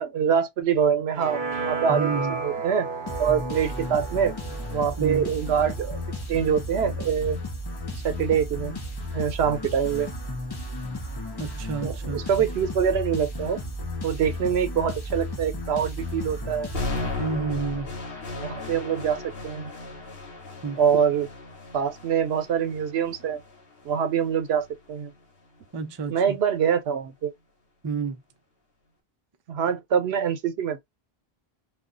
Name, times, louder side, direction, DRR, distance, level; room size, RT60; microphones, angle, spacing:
voice 1, 0.0-2.9 3.2-4.3 4.7-6.0 6.3-7.4 7.9-8.8 9.1-10.1 11.8-13.6 14.0-16.7 18.4-19.7 20.8-21.3 21.7-23.4 23.8-25.1 26.1-27.3 29.5-30.8, right 7 dB, 85° right, 0.9 m, -25 dB
sound 1, 1.1-6.2, right 4 dB, 55° right, 0.8 m, -33 dB
voice 2, 1.9-2.4 5.0-5.3 11.4-12.2 17.2-17.9 20.6-20.8 25.7-26.4 27.8-28.2, right 5 dB, 40° right, 0.4 m, -29 dB
sound 2, 3.1-17.6, left 1 dB, 30° left, 0.6 m, -34 dB
sound 3, 16.7-24.8, left 3 dB, 70° left, 1.1 m, -36 dB
2.4 x 2.2 x 3.6 m
omnidirectional pair, 1.0 m